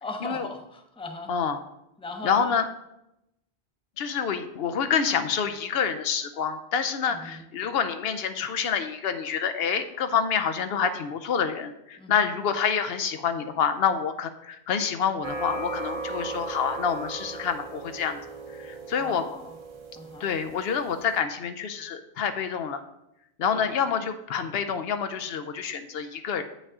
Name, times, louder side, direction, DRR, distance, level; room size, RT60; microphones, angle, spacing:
voice 1, 0.0-1.3 2.0-2.6 7.1-7.4 12.0-12.3 19.0-19.6 20.0-20.3 23.5-23.8, left 2 dB, 5° left, 4 dB, 0.6 m, -39 dB
voice 2, 1.3-1.6 2.2-2.7 4.0-18.2 18.5-19.2 20.2-22.8 23.4-26.4, left 7 dB, 75° left, 9 dB, 0.8 m, -27 dB
sound 1, 15.2-21.2, right 3 dB, 35° right, 0.5 m, -37 dB
8.3 x 5.3 x 3.6 m, 0.85 s
omnidirectional pair, 1.0 m